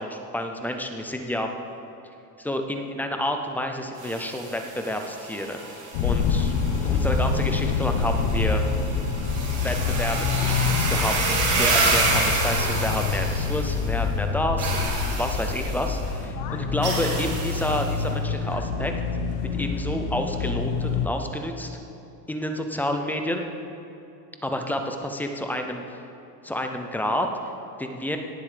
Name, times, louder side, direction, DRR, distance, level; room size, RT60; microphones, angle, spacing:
voice 1, 0.0-1.5 2.4-8.6 9.5-18.9 19.5-21.8 22.3-23.4 24.4-26.0 26.4-27.3 27.8-28.2, left 1 dB, 5° left, 4 dB, 0.4 m, -29 dB
sound 1, 3.9-14.0 14.6-16.0 16.8-18.0, right 3 dB, 35° right, 2.2 m, -29 dB
sound 2, 5.9-21.1, left 5 dB, 75° left, 1.2 m, -26 dB
18.0 x 7.2 x 5.0 m, 3.0 s
cardioid pair, 160°, 41 cm